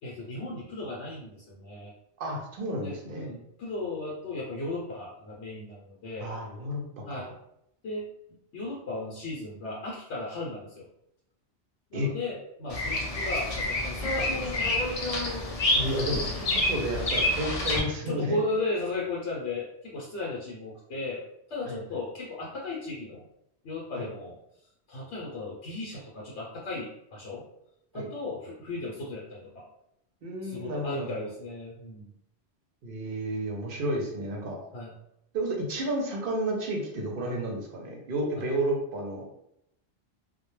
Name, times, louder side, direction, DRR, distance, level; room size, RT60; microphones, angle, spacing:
voice 1, 0.0-1.9 2.8-6.3 7.1-7.4 7.8-8.1 8.5-10.9 11.9-14.9 15.8-16.5 16.9-17.1 18.0-21.2 21.5-23.2 23.6-24.4 24.9-27.5 27.9-29.7 30.4-32.1 34.7-34.9, left 2 dB, 70° left, -4 dB, 0.9 m, -36 dB
voice 2, 2.2-3.3 6.2-6.8 7.1-7.3 11.9-12.1 15.7-16.2 16.5-18.4 21.7-21.8 24.0-24.1 27.9-28.1 30.2-31.3 32.8-34.6 35.3-39.4, right 1 dB, 60° right, 1 dB, 0.7 m, -31 dB
Bird vocalization bird call bird song, 12.7-17.8, left 1 dB, 55° left, 0.4 m, -28 dB
2.1 x 2.1 x 3.0 m, 0.77 s
omnidirectional pair, 1.2 m